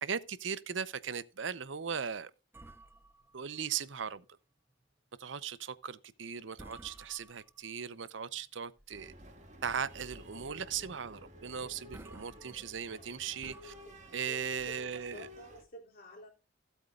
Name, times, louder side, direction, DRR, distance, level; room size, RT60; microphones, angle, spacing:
voice 1, 0.0-2.3 3.3-4.2 5.2-9.1 9.6-13.7 14.1-15.3, right 7 dB, 70° right, 0.7 m, -38 dB
sound 1, 2.5-4.3 4.7-4.8 5.3-5.6 6.1-6.3 6.6-7.9 8.4-9.2 9.6-9.7 10.2-10.4 10.7-10.8 11.4-11.5 11.8-15.5, right 1 dB, 10° right, 0.7 m, -56 dB
sound 2, 8.9-15.6, left 1 dB, 40° right, 1.9 m, -52 dB
voice 2, 12.1-12.4 12.9-13.1 13.9-16.3, left 1 dB, 50° left, 3.6 m, -52 dB
16.0 x 8.1 x 2.4 m
head